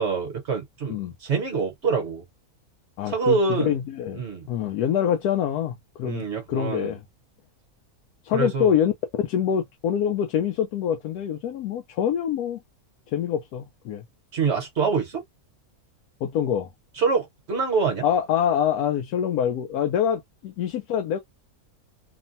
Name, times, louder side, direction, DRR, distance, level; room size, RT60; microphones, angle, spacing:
voice 1, 0.0-0.9 1.2-2.2 3.1-3.7 4.2-4.5 6.0-7.0 8.3-8.7 14.3-15.2 17.0-18.0, right 5 dB, 50° right, 1.2 m, -25 dB
voice 2, 3.0-4.2 4.5-5.7 6.0-7.0 8.2-8.9 9.2-12.6 13.1-14.0 16.2-16.7 18.0-21.2, left 9 dB, 90° left, 1.1 m, -25 dB
3.1 x 2.1 x 2.6 m
omnidirectional pair, 1.6 m